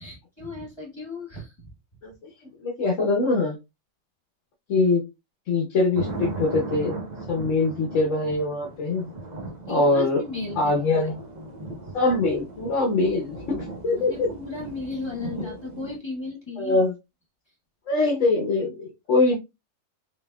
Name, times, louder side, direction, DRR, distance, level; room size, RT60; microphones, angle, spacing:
voice 1, 0.0-1.7 9.7-10.7 14.0-16.8, left 3 dB, 20° left, 0 dB, 1.3 m, -35 dB
voice 2, 2.6-3.6 4.7-5.0 5.5-7.0 7.3-9.1 9.7-10.2 10.6-11.1 11.9-13.6 13.8-14.3 16.6-16.9 17.9-19.4, left 2 dB, 65° left, -1 dB, 1.3 m, -23 dB
sound 1, 5.9-16.0, right 2 dB, 40° right, 0.8 m, -37 dB
4.2 x 3.4 x 2.2 m, 0.24 s
omnidirectional pair, 1.4 m